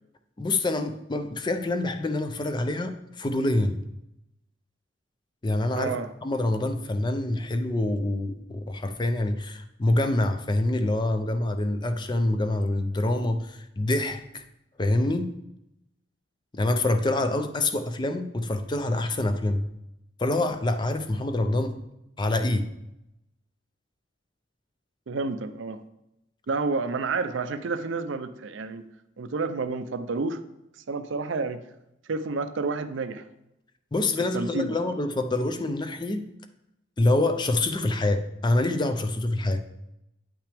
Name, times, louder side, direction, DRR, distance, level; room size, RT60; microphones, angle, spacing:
voice 1, 0.4-3.8 5.4-5.9 6.2-14.4 14.8-15.3 16.5-19.6 20.2-21.8 22.2-22.7 33.9-36.3 37.0-39.6, left 2 dB, 25° left, 8 dB, 0.4 m, -26 dB
voice 2, 5.7-6.1 25.1-25.8 26.5-28.8 29.2-30.4 30.9-31.6 32.1-33.2 34.3-34.8, right 4 dB, 70° right, 11 dB, 0.5 m, -29 dB
8.7 x 5.8 x 3.4 m, 0.88 s
head